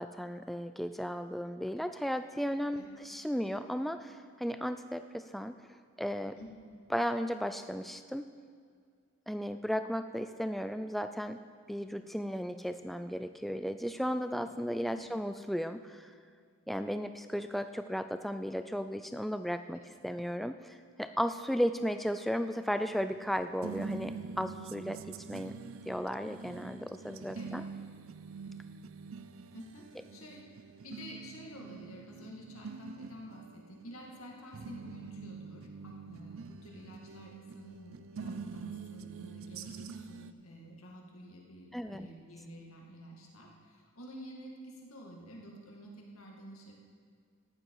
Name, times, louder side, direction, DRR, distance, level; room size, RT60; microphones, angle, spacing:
voice 1, 0.0-5.5 6.0-6.4 6.9-8.3 9.3-11.4 11.7-16.1 16.7-25.5 25.9-27.6 41.7-42.1, equal, ahead, 9 dB, 0.3 m, -35 dB
sound 1, 22.8-40.3, right 5 dB, 70° right, 0.5 m, -45 dB
voice 2, 29.5-30.4 30.8-46.7, equal, 85° left, -1 dB, 2.1 m, -50 dB
14.0 x 10.5 x 4.8 m, 2.1 s
head